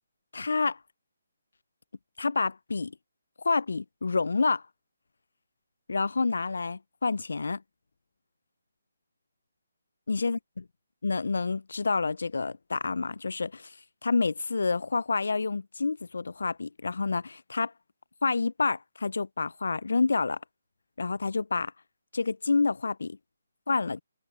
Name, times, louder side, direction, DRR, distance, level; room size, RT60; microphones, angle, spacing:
voice 1, 0.3-0.8 2.2-2.9 3.4-4.6 5.9-7.6 10.1-10.6 11.0-13.7 14.0-17.7 18.2-20.4 21.0-21.7 22.1-23.2 23.7-24.0, left 4 dB, 80° left, 0.3 m, -28 dB
hypercardioid pair, 160°, 0 cm